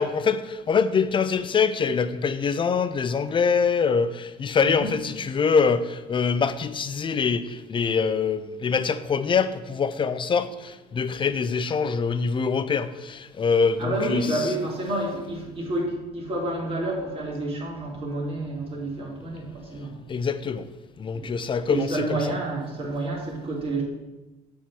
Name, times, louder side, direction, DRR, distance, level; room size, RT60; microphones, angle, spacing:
voice 1, 0.0-14.3 20.1-20.6 21.0-22.2, left 5 dB, 30° left, 0.5 m, -24 dB
voice 2, 13.8-20.1 21.1-21.4 21.7-23.8, right 1 dB, 35° right, 2.5 m, -29 dB
7.3 x 3.7 x 6.2 m
supercardioid pair, 85°, 18 cm